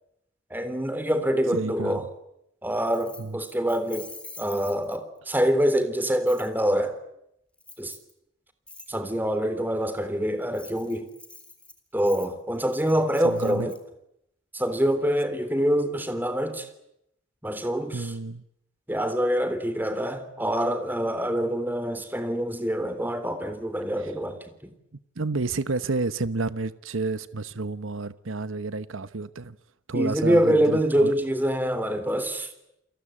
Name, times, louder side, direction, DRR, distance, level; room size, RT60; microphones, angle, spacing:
voice 1, 0.5-2.1 2.6-4.1 4.4-7.0 7.8-7.9 8.9-11.1 11.9-13.8 14.5-16.7 17.4-18.1 18.9-24.7 29.9-32.7, equal, 10° right, 3.3 m, -25 dB
voice 2, 1.5-2.0 3.2-3.4 13.2-13.7 17.9-18.4 24.0-24.1 25.2-29.6 29.9-31.1, right 3 dB, 85° right, 1.1 m, -30 dB
Keys jangling, 2.9-5.2 6.3-6.5 7.6-8.1 8.7-8.9 10.4-13.8, left 2 dB, 5° left, 3.6 m, -46 dB
30.0 x 22.5 x 8.7 m
head